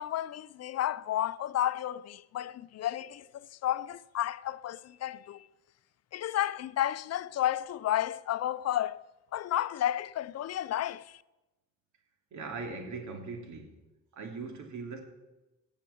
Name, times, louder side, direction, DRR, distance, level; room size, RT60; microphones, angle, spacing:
voice 1, 0.0-3.3 3.6-5.4 6.1-9.0 9.3-11.0, left 12 dB, 55° left, 0.5 m, -32 dB
voice 2, 12.3-13.7 14.1-15.0, right 4 dB, 70° right, 2.9 m, -40 dB
17.0 x 7.3 x 7.0 m
cardioid pair, 90°, 30 cm